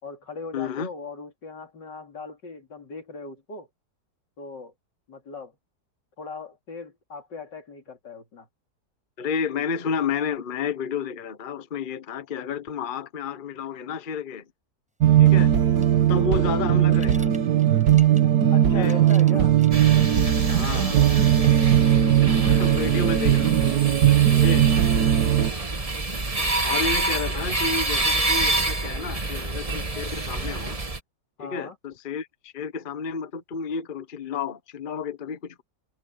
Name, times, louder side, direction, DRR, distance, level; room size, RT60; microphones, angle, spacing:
voice 1, 0.0-3.7 4.4-4.7 5.1-5.6 6.2-8.5 18.5-19.5 20.8-21.2 31.4-31.8, left 4 dB, 80° left, 3.5 m, -39 dB
voice 2, 0.5-0.9 9.2-14.5 15.2-15.5 16.1-17.3 18.6-19.0 20.5-20.9 22.2-23.6 24.3-24.6 26.6-30.8 31.4-35.6, left 6 dB, 35° left, 1.0 m, -31 dB
sound 1, 15.0-25.5, right 11 dB, 65° right, 1.5 m, -19 dB
sound 2, 15.8-18.4 18.7-20.4 20.7-21.0 21.4-22.3 22.6-23.4, equal, 5° right, 5.0 m, -48 dB
sound 3, 19.7-31.0, right 2 dB, 20° right, 1.4 m, -27 dB
omnidirectional pair, 1.9 m